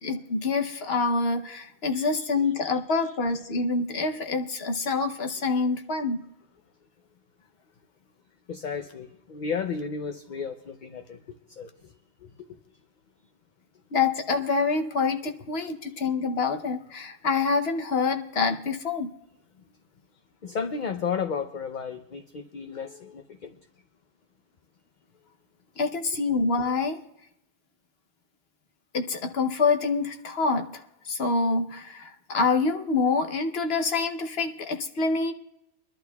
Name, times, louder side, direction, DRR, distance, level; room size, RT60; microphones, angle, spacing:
voice 1, 0.0-6.2 13.9-19.1 25.8-27.0 28.9-35.3, left 4 dB, 70° left, 6 dB, 1.2 m, -26 dB
voice 2, 1.9-2.3 2.6-3.0 8.5-11.2 11.6-11.7 12.2-12.3 20.4-23.5, left 6 dB, 50° left, 6 dB, 0.7 m, -33 dB
25.0 x 11.5 x 2.3 m, 0.83 s
omnidirectional pair, 1.1 m